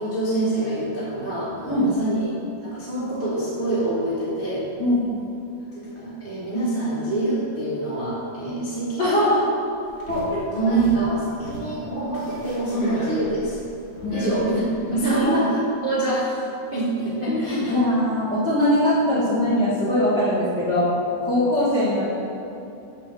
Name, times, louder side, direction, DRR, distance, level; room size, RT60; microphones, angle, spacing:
voice 1, 0.0-2.3 2.6-4.7 5.7-9.5 10.1-13.6 14.1-14.6 14.9-16.4 16.7-17.9, right 2 dB, 45° right, -10 dB, 0.7 m, -25 dB
voice 2, 4.8-5.2 9.0-9.5 10.7-10.8 14.0-14.3 15.0-15.3 17.3-22.0, left 1 dB, 55° left, -9 dB, 1.2 m, -21 dB
sound 1, 9.8-15.2, right 1 dB, 30° left, 0.9 m, -37 dB
8.1 x 3.4 x 6.6 m, 2.9 s
omnidirectional pair, 3.6 m